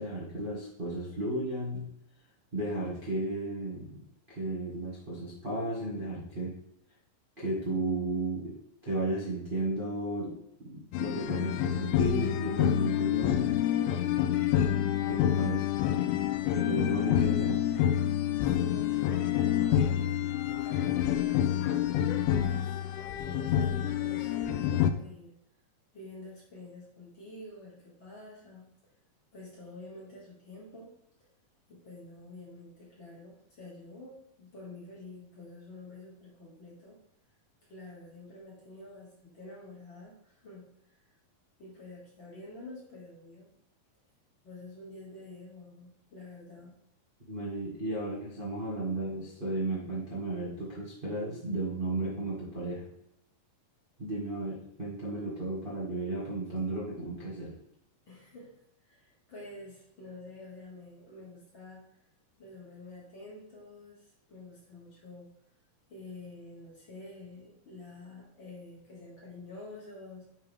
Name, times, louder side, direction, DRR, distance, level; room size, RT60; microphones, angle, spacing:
voice 1, 0.0-1.9 2.5-4.0 4.3-6.6 7.4-8.5 8.8-13.5 15.1-15.7 16.3-17.6 47.3-52.9 54.0-57.5, right 2 dB, 25° right, -8 dB, 1.1 m, -34 dB
sound 1, 10.9-24.9, left 10 dB, 80° left, 1.9 m, -28 dB
voice 2, 18.4-19.8 20.4-21.5 22.4-25.3 25.9-28.7 29.3-30.9 31.2-31.3 31.7-37.0 37.6-40.7 41.0-41.1 41.6-43.5 44.4-46.8 58.1-58.6 58.8-61.8 62.4-65.3 65.9-70.3, left 2 dB, 40° left, -5 dB, 2.5 m, -48 dB
9.7 x 4.6 x 3.5 m, 0.79 s
omnidirectional pair, 4.1 m